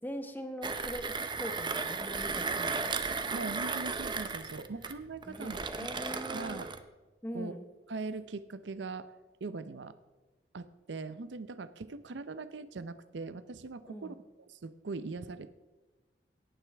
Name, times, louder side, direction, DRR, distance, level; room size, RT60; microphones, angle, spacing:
voice 1, 0.0-3.0 5.2-6.6 7.2-7.7 13.9-14.2, equal, 10° left, 6 dB, 1.0 m, -42 dB
Mechanisms, 0.6-6.8, right 4 dB, 25° right, 0.7 m, -35 dB
voice 2, 3.1-5.6 6.3-6.7 7.3-7.5 7.9-9.1 9.4-10.0 10.5-14.1 14.5-15.5, right 3 dB, 85° right, 14 dB, 0.6 m, -41 dB
18.0 x 9.1 x 3.4 m, 1.2 s
head